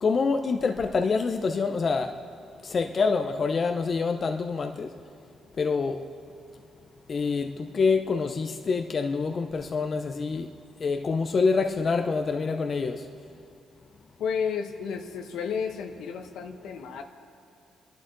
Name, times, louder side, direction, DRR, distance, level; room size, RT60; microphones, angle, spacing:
voice 1, 0.0-2.1 2.6-4.9 5.6-6.0 7.1-10.5 10.8-13.0, left 4 dB, 45° left, 5 dB, 0.7 m, -26 dB
voice 2, 14.2-17.0, left 6 dB, 80° left, 5 dB, 1.2 m, -32 dB
29.0 x 11.5 x 4.0 m, 2.3 s
cardioid pair, 90°, 0 cm